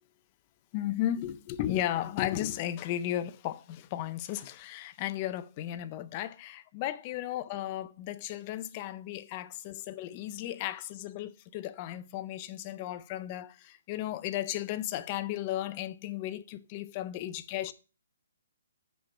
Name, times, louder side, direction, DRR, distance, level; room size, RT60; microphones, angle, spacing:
voice 1, 0.7-17.7, left 12 dB, 25° left, 0.5 m, -35 dB
7.5 x 4.5 x 6.0 m
hypercardioid pair, 170°, 0 cm